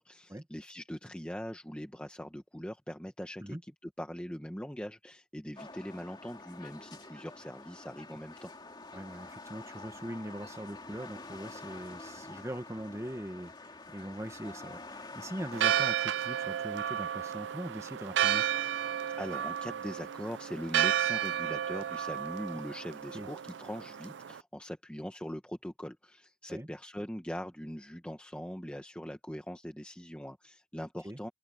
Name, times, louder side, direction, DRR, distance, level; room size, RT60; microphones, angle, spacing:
voice 1, 0.0-8.5 19.1-31.3, equal, 5° left, 1.1 m, -41 dB
sound 1, 5.6-15.8, left 3 dB, 25° left, 2.4 m, -47 dB
voice 2, 8.9-18.5 23.1-23.3 26.5-26.7 31.0-31.2, equal, 15° right, 1.6 m, -41 dB
Church bell, 15.5-24.4, right 10 dB, 80° right, 0.5 m, -32 dB
open air
head